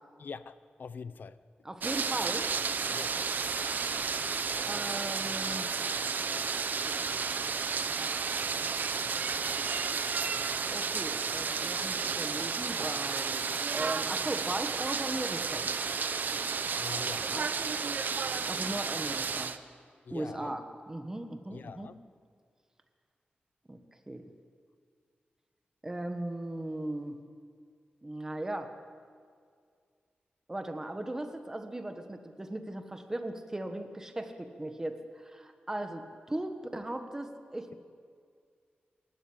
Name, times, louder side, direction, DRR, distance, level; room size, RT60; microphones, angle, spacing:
voice 1, 0.2-1.4 2.9-3.1 16.7-17.5 20.1-20.5 21.5-21.9, left 5 dB, 60° left, 0.7 m, -44 dB
voice 2, 1.6-2.5 4.6-5.7 10.7-13.4 13.7-15.7 18.4-19.5 20.1-21.9 23.7-23.8 24.1-24.3 25.8-27.2 28.0-28.7 30.5-37.7, right 1 dB, 15° right, 1.4 m, -38 dB
sound 1, 1.8-19.6, right 5 dB, 55° right, 0.8 m, -32 dB
28.0 x 12.5 x 8.7 m
wide cardioid pair, 175°, 4 cm